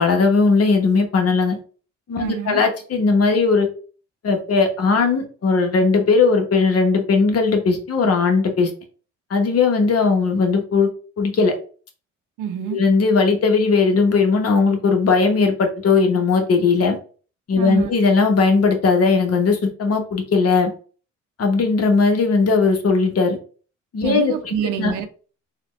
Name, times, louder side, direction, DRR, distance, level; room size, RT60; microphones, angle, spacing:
voice 1, 0.0-1.6 2.1-3.7 4.2-8.7 9.3-10.9 11.2-11.5 12.7-17.0 17.5-20.7 21.4-23.4 23.9-24.9, left 4 dB, 55° left, 1.0 m, -18 dB
voice 2, 2.2-2.6 12.4-12.8 17.6-17.9 24.0-25.1, right 9 dB, 90° right, 0.6 m, -26 dB
4.1 x 2.3 x 3.1 m
cardioid pair, 90°, 30 cm